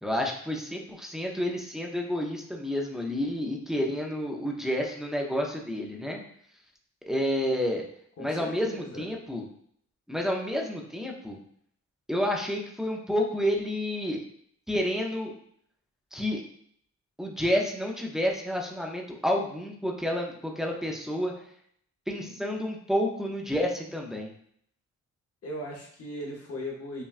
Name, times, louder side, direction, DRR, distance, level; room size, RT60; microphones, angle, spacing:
voice 1, 0.0-6.2 7.1-7.8 8.2-9.5 10.1-11.4 12.1-14.2 14.7-15.3 16.1-16.4 17.2-21.3 22.1-24.3, equal, ahead, 1 dB, 0.4 m, -29 dB
voice 2, 8.2-9.1 25.4-27.0, equal, 50° left, -1 dB, 0.8 m, -38 dB
5.4 x 2.2 x 2.4 m, 0.65 s
wide cardioid pair, 175°, 30 cm